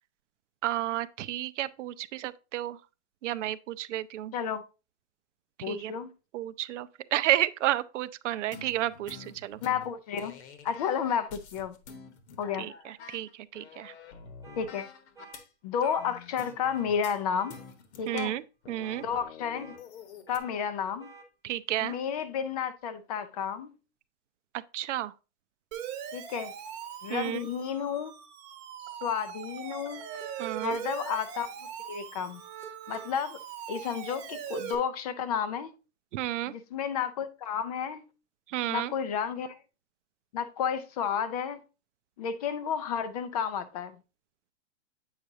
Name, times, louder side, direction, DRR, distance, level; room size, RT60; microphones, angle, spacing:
voice 1, 0.6-2.8 3.2-4.3 5.6-5.9 6.3-9.6 12.6-13.9 18.1-19.0 21.4-21.9 24.7-25.1 27.1-27.5 30.4-30.8 36.1-36.5 38.5-38.9, right 13 dB, 80° right, 0.5 m, -31 dB
voice 2, 5.6-6.1 9.6-10.3 10.6-11.7 12.4-12.7 14.6-14.9 15.6-17.6 18.0-18.3 19.0-19.7 20.3-21.1 21.8-23.7 26.1-26.5 27.0-28.1 29.0-30.0 30.6-31.5 31.9-32.4 32.9-33.4 33.7-35.7 36.5-38.0 38.7-39.6 40.3-41.6 42.2-43.9, left 7 dB, 35° left, 0.4 m, -31 dB
sound 1, 8.5-15.5 15.8-17.2 17.5-20.4, left 5 dB, 65° left, 1.2 m, -48 dB
sound 2, 14.4-14.7 15.2-15.4 15.9-16.2 16.6-16.9 17.3-17.6 18.1-18.3 18.8-19.1 19.5-19.8 20.3-20.5 21.0-21.3 21.7-22.0, right 4 dB, 10° right, 0.7 m, -51 dB
Siren, 25.7-34.7, right 9 dB, 35° right, 1.0 m, -41 dB
8.0 x 4.9 x 2.7 m
supercardioid pair, 160°, 36 cm